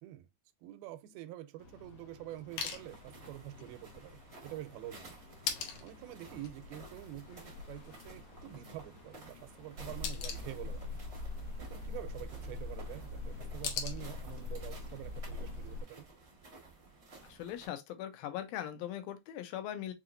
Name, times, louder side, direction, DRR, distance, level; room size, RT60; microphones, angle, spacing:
voice 1, 0.6-5.1 5.8-11.0 11.6-16.1, right 14 dB, 90° right, 2.4 m, -47 dB
sound 1, 1.6-15.9, left 7 dB, 70° left, 2.0 m, -46 dB
sound 2, 2.5-17.7, right 3 dB, 70° right, 0.6 m, -55 dB
sound 3, 9.8-15.8, left 2 dB, 45° right, 2.0 m, -42 dB
voice 2, 17.2-19.9, left 11 dB, 90° left, 2.5 m, -40 dB
5.9 x 2.8 x 2.4 m
omnidirectional pair, 4.2 m